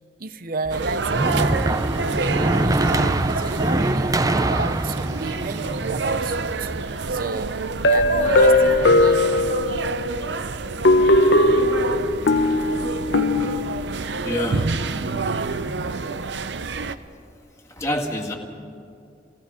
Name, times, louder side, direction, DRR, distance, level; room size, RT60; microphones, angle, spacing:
voice 1, 0.2-1.6 2.1-7.5 7.8-9.2, right 3 dB, 55° right, 12 dB, 0.8 m, -32 dB
sound 1, 0.6-6.8, right 2 dB, 20° right, 0.6 m, -24 dB
sound 2, 0.7-17.0, right 3 dB, 85° right, 0.7 m, -28 dB
sound 3, 7.8-10.1 10.8-14.0, left 2 dB, 80° left, 1.0 m, -18 dB
voice 2, 14.2-14.7 16.4-16.5 17.8-18.4, left 1 dB, 15° left, 1 dB, 2.0 m, -26 dB
28.5 x 18.0 x 5.1 m, 2.5 s
head